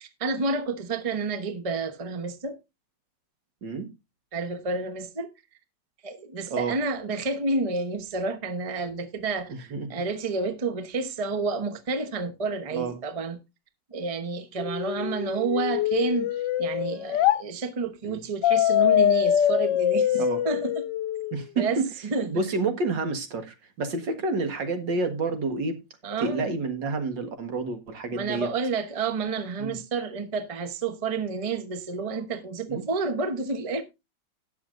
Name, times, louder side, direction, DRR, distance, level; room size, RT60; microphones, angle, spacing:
voice 1, 0.0-2.6 4.3-5.3 6.0-13.4 13.9-20.9 21.6-22.4 26.0-26.5 28.1-33.8, right 4 dB, 25° right, 0.9 m, -30 dB
voice 2, 9.5-9.9 12.7-12.9 18.0-18.2 20.2-20.4 21.3-21.9 22.3-25.8 26.2-28.5 29.6-29.8 32.7-32.8, right 3 dB, 75° right, 2.3 m, -29 dB
sound 1, 14.6-17.4 18.4-21.4, left 11 dB, 75° left, 1.3 m, -24 dB
18.0 x 6.9 x 2.6 m
omnidirectional pair, 2.0 m